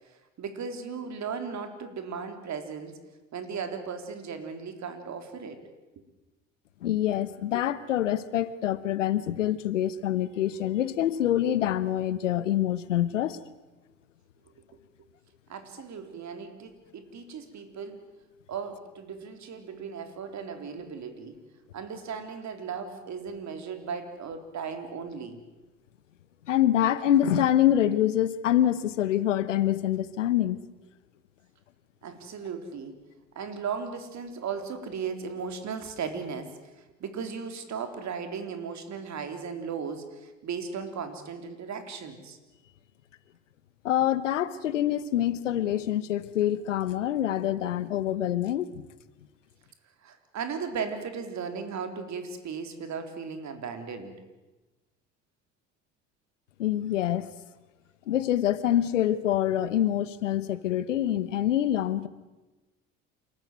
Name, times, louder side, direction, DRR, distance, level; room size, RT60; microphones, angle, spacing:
voice 1, 0.4-2.9 3.3-5.7 14.6-14.7 15.5-18.0 18.5-21.4 21.7-25.4 32.0-32.9 33.4-42.4 50.0-54.2, right 6 dB, 50° right, 7 dB, 3.8 m, -36 dB
voice 2, 6.8-13.4 26.5-30.6 43.8-48.8 56.6-57.3 58.1-62.1, left 11 dB, 85° left, 17 dB, 1.0 m, -26 dB
28.5 x 14.0 x 9.3 m, 1.1 s
hypercardioid pair, 60°, 37 cm